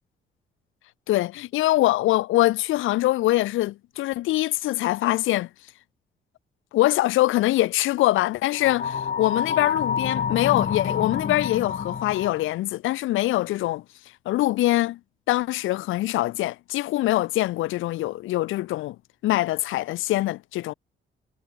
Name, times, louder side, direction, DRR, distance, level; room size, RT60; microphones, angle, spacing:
voice 1, 1.1-5.5 6.7-13.8 14.3-15.0 15.3-19.0 19.2-20.7, left 16 dB, 85° left, 0.7 m, -23 dB
sound 1, 8.5-12.5, left 6 dB, 45° left, 3.9 m, -28 dB
cardioid pair, 90°, 20 cm